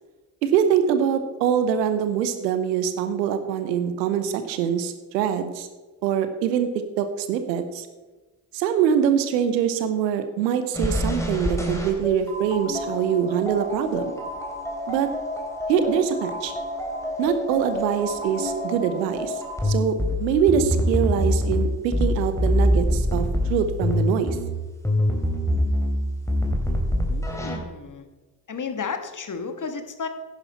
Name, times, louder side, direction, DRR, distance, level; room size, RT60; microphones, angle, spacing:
voice 1, 0.4-5.7 6.0-6.7 7.0-7.9 8.5-14.1 14.9-15.1 15.7-16.5 17.2-24.4, right 8 dB, 80° right, 10 dB, 1.0 m, -24 dB
sound 1, 10.7-27.6, left 1 dB, 5° left, 3.0 m, -26 dB
voice 2, 27.1-28.1 28.5-30.1, left 5 dB, 40° left, 8 dB, 1.5 m, -33 dB
10.5 x 10.0 x 4.2 m, 1.2 s
figure-of-eight pair, 40°, 49 cm